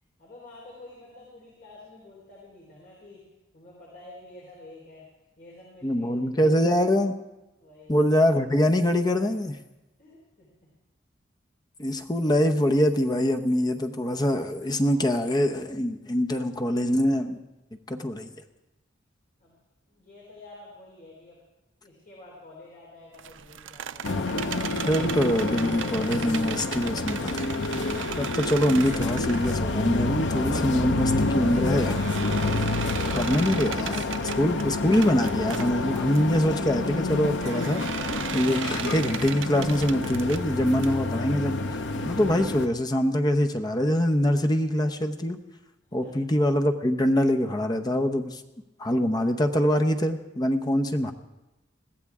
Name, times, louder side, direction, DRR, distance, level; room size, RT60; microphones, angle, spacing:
voice 1, 0.2-3.3 3.5-5.1 5.4-6.7 7.6-8.0 10.0-10.5 19.4-19.6 19.9-21.4 21.8-24.2 45.8-46.2, left 2 dB, 50° left, -5 dB, 4.1 m, -49 dB
voice 2, 5.8-7.1 7.9-9.6 11.8-17.4 17.9-18.3 24.9-32.0 33.1-37.8 38.3-41.6 42.0-45.4 45.9-48.4 48.8-51.1, equal, 20° left, 5 dB, 0.8 m, -24 dB
sound 1, 23.1-30.4 30.9-36.2 37.3-41.0, right 9 dB, 80° right, 0.5 m, -37 dB
sound 2, 24.0-42.7, left 2 dB, 65° left, 0.8 m, -28 dB
21.5 x 15.0 x 3.6 m, 1.0 s
head